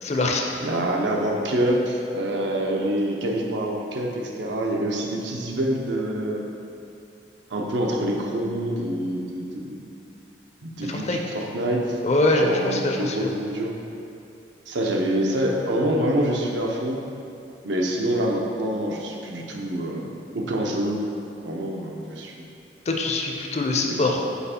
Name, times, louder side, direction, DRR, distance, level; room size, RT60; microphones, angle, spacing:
voice 1, 0.0-0.5 10.8-11.2 12.0-13.3 22.9-24.2, left 2 dB, 35° left, 2 dB, 0.5 m, -23 dB
voice 2, 0.6-6.4 7.5-9.8 10.6-12.0 12.3-13.7 14.7-17.0 17.6-21.1 21.4-22.3 24.0-24.1, right 1 dB, 80° right, 0 dB, 0.7 m, -26 dB
5.6 x 4.3 x 4.3 m, 2.7 s
head